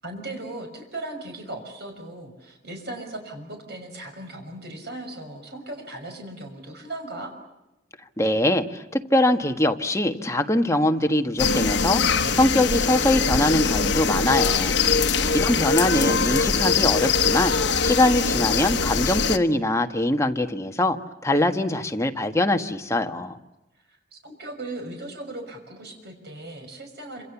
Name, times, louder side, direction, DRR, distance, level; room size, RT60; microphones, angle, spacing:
voice 1, 0.0-7.3 15.1-16.1 23.9-27.2, right 2 dB, 60° right, 4 dB, 6.1 m, -37 dB
voice 2, 8.2-17.5 17.8-21.0 21.2-23.4, left 1 dB, 15° left, 5 dB, 1.5 m, -23 dB
sound 1, 11.4-19.4, left 5 dB, 65° left, 1.3 m, -22 dB
27.0 x 27.0 x 7.2 m, 0.97 s
head